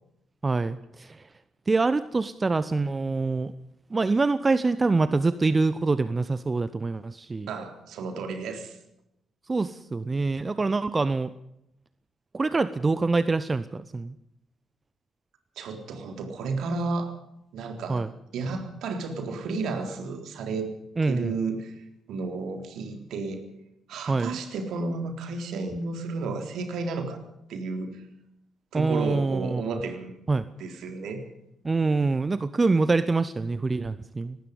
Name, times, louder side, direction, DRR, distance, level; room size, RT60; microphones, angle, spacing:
voice 1, 0.4-1.3 1.7-3.5 3.9-7.5 9.5-11.3 12.3-14.1 17.9-18.1 21.0-21.3 24.1-24.4 28.7-29.8 30.3-30.4 31.6-34.4, right 3 dB, 30° right, 15 dB, 1.0 m, -25 dB
voice 2, 7.5-8.8 15.6-17.1 17.5-18.0 18.3-20.7 21.0-23.4 23.9-27.2 27.5-28.0 28.7-30.1 30.6-31.2, right 3 dB, 60° right, 6 dB, 3.8 m, -32 dB
24.5 x 19.5 x 5.3 m, 0.81 s
figure-of-eight pair, 40°, 0 cm